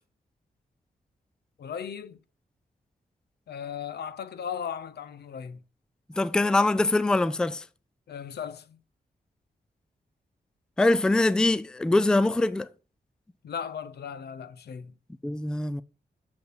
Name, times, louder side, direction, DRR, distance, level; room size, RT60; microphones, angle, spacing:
voice 1, 1.6-2.2 3.5-5.6 8.1-8.8 13.4-14.9, left 7 dB, 85° left, 0.7 m, -37 dB
voice 2, 6.2-7.6 10.8-12.7 15.2-15.8, left 2 dB, 5° left, 0.3 m, -23 dB
6.6 x 5.5 x 6.0 m
wide cardioid pair, 150°, 16 cm